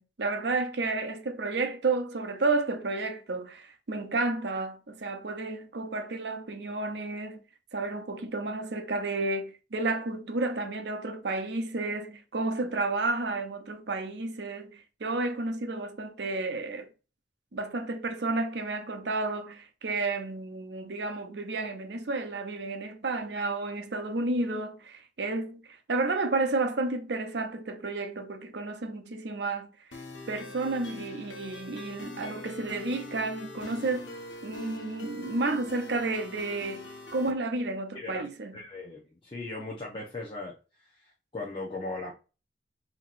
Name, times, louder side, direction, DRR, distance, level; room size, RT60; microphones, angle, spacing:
voice 1, 0.0-7.4 7.7-16.9 17.5-29.7 30.3-34.1 34.4-38.6, right 3 dB, 65° right, 0.7 m, -31 dB
sound 1, 29.9-37.3, left 2 dB, 85° left, 0.9 m, -43 dB
voice 2, 37.9-38.3 38.5-40.5 40.9-42.1, left 2 dB, 30° left, 0.8 m, -38 dB
5.6 x 2.9 x 2.5 m
head